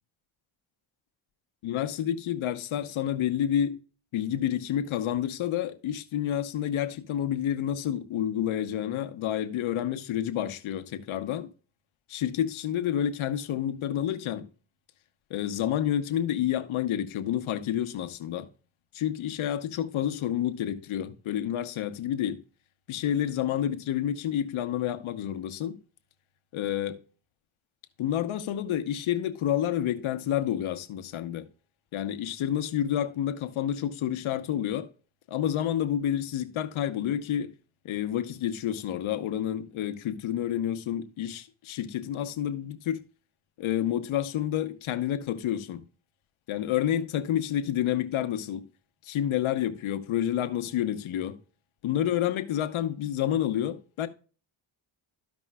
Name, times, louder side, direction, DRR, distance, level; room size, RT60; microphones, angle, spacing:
voice 1, 1.6-3.8 4.1-11.5 12.1-14.5 15.3-18.5 18.9-22.4 22.9-25.8 26.5-27.0 28.0-31.5 31.9-34.9 35.3-37.5 37.8-43.0 43.6-45.8 46.5-48.6 49.0-51.4 51.8-54.1, left 10 dB, 75° left, 0.9 m, -29 dB
13.5 x 5.3 x 2.2 m
cardioid pair, 70°, 48 cm